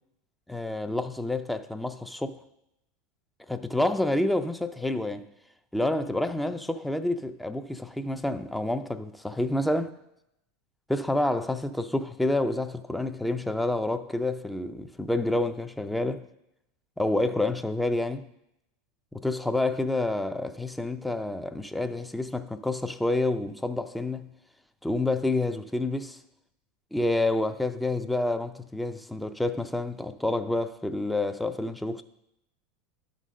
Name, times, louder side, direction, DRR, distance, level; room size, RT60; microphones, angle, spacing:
voice 1, 0.5-2.4 3.5-5.3 5.7-9.9 10.9-16.3 17.0-18.2 19.1-24.3 24.8-26.2 26.9-32.0, left 2 dB, 5° left, 0.5 m, -28 dB
10.5 x 4.0 x 6.3 m
hypercardioid pair, 105°, 0 cm